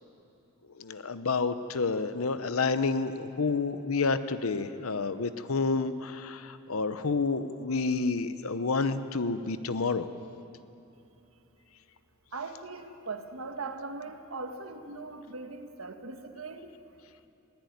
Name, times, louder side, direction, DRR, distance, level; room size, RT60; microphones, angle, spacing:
voice 1, 0.8-10.1, left 4 dB, 80° left, 12 dB, 0.9 m, -29 dB
voice 2, 12.3-16.7, right 3 dB, 80° right, 6 dB, 1.7 m, -40 dB
21.0 x 16.0 x 9.5 m, 2.9 s
head